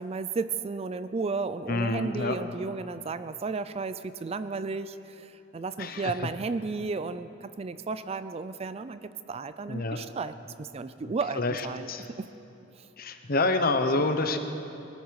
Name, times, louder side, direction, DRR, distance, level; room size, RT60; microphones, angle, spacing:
voice 1, 0.0-11.9 12.2-12.3 12.8-12.9, right 4 dB, 30° right, 13 dB, 0.4 m, -33 dB
voice 2, 1.7-2.4 5.8-6.1 9.7-10.0 11.0-11.6 11.9-12.0 13.0-14.4, left 2 dB, 50° left, 7 dB, 1.0 m, -27 dB
20.5 x 13.5 x 4.8 m, 3.0 s
head